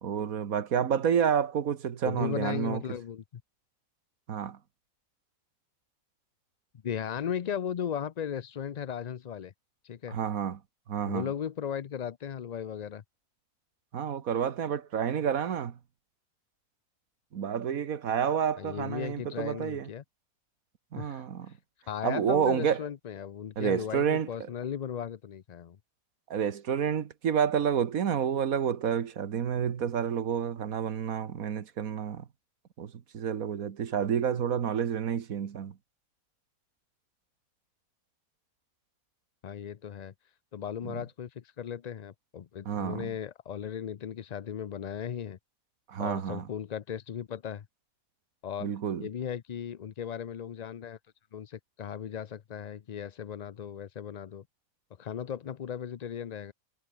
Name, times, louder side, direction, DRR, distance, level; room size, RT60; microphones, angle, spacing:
voice 1, 0.0-2.8 4.3-4.6 10.1-10.6 10.9-11.3 13.9-15.8 17.3-19.9 20.9-21.5 22.0-22.8 23.6-24.3 26.3-32.3 32.8-35.8 40.8-41.0 42.7-43.1 45.9-46.4 48.6-49.1, right 8 dB, 80° right, 1.7 m, -29 dB
voice 2, 2.0-3.2 6.8-9.5 9.8-10.2 11.0-13.0 18.6-20.0 21.0-21.5 21.9-25.8 39.4-40.1 40.5-45.4 46.0-47.7 48.4-48.7 49.0-51.0 51.3-54.4 55.0-56.5, left 8 dB, 70° left, 0.4 m, -36 dB
omnidirectional pair, 1.5 m